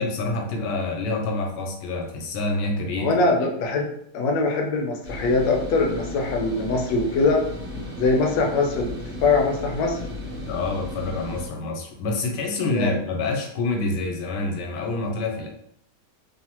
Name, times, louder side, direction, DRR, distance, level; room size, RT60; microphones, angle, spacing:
voice 1, 0.0-3.1 10.5-15.5, left 2 dB, 90° left, 1 dB, 1.2 m, -27 dB
voice 2, 3.0-7.4 8.0-10.0 12.7-12.9, left 3 dB, 70° left, 1 dB, 1.0 m, -22 dB
sound 1, 5.0-11.4, left 2 dB, 50° right, 0.9 m, -35 dB
3.1 x 2.0 x 2.8 m, 0.73 s
omnidirectional pair, 1.8 m